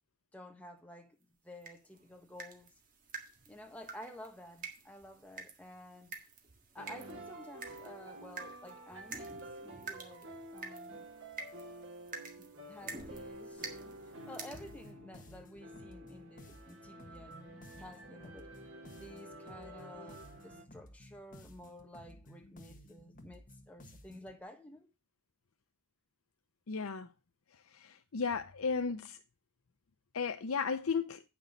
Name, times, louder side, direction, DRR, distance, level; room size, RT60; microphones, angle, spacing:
voice 1, 0.3-1.2 1.4-2.7 3.5-6.1 6.7-11.1 12.4-18.5 18.9-24.9, left 1 dB, 5° left, 1.5 m, -52 dB
sound 1, 1.6-14.9, right 4 dB, 40° right, 1.7 m, -49 dB
sound 2, 6.8-20.6, right 1 dB, 70° right, 3.7 m, -50 dB
sound 3, 14.5-24.4, equal, 40° left, 1.4 m, -55 dB
voice 2, 26.7-27.1 27.7-29.2 30.1-31.2, left 5 dB, 85° left, 0.7 m, -34 dB
9.1 x 6.2 x 5.2 m
head